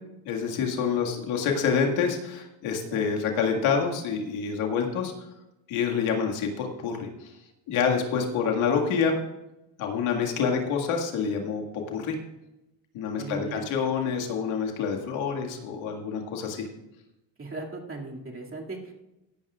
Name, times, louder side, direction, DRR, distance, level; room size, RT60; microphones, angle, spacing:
voice 1, 0.3-5.1 5.7-7.3 7.7-9.2 9.8-11.6 11.9-12.2 12.9-16.7, left 6 dB, 85° left, 1 dB, 2.0 m, -27 dB
voice 2, 13.2-13.6 17.4-18.9, right 3 dB, 25° right, -1 dB, 2.4 m, -37 dB
16.5 x 11.0 x 2.4 m, 0.94 s
cardioid pair, 110°, 47 cm